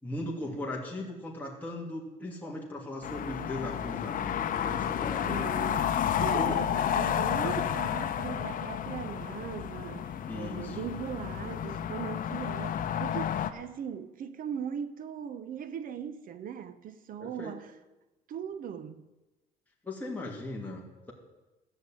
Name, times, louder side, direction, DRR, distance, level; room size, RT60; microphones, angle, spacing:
voice 1, 0.0-5.5 6.3-6.6 7.4-7.5 10.3-10.9 17.2-17.5 19.8-21.1, left 1 dB, 10° left, 2.8 m, -38 dB
sound 1, 3.0-13.5, left 9 dB, 55° left, 0.9 m, -31 dB
voice 2, 5.3-17.7 18.3-19.1, right 8 dB, 55° right, 0.9 m, -39 dB
13.0 x 6.9 x 9.1 m
cardioid pair, 110°, 17 cm